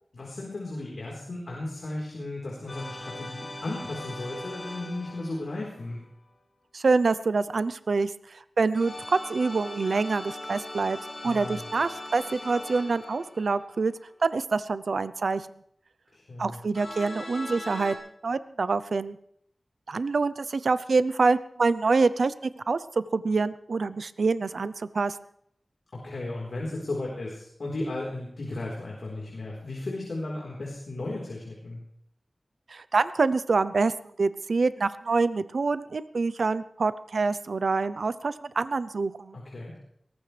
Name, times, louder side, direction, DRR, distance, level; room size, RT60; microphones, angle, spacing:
voice 1, 0.1-6.0 11.2-11.6 16.1-16.6 25.9-31.8 39.3-39.7, left 2 dB, 80° left, -3 dB, 4.2 m, -35 dB
sound 1, 2.7-6.0 8.7-14.1 16.7-18.0, left 1 dB, 55° left, 6.6 m, -40 dB
voice 2, 6.7-11.0 11.2-13.9 14.2-15.5 16.4-18.0 18.2-19.2 19.9-25.2 32.7-33.9 34.2-39.4, right 4 dB, 85° right, 14 dB, 0.7 m, -26 dB
22.0 x 18.5 x 3.4 m, 0.69 s
wide cardioid pair, 80°, 0 cm